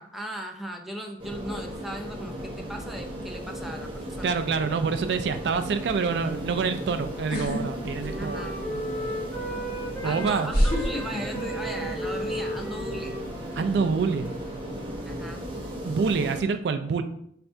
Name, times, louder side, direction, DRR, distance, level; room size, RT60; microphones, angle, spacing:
voice 1, 0.0-4.4 8.2-8.5 10.0-13.2 15.0-15.4, right 1 dB, ahead, 2 dB, 0.4 m, -37 dB
sound 1, 1.2-16.4, equal, 30° right, 1.0 m, -36 dB
voice 2, 4.2-8.9 10.0-10.5 13.5-14.3 15.8-17.0, right 5 dB, 65° right, 8 dB, 0.4 m, -26 dB
Wind instrument woodwind instrument, 5.4-10.3 10.6-15.9, right 1 dB, 20° left, 1.6 m, -38 dB
sound 2, 7.3-7.6 8.0-8.6 9.6-9.7 10.5-11.9 12.2-12.6, equal, 55° left, 1.4 m, -26 dB
5.7 x 3.3 x 2.6 m, 0.70 s
head